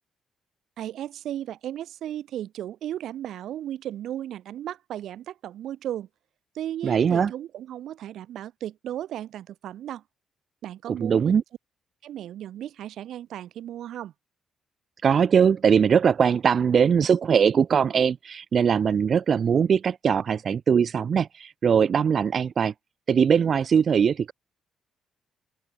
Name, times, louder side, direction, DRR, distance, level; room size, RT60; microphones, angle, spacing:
voice 1, 0.8-6.1 6.5-10.0 10.6-11.4 12.0-14.1, right 11 dB, 75° right, 1.9 m, -35 dB
voice 2, 6.8-7.3 10.9-11.4 15.0-22.7 23.1-24.3, right 7 dB, 50° right, 1.1 m, -21 dB
cardioid pair, 90°, 0 cm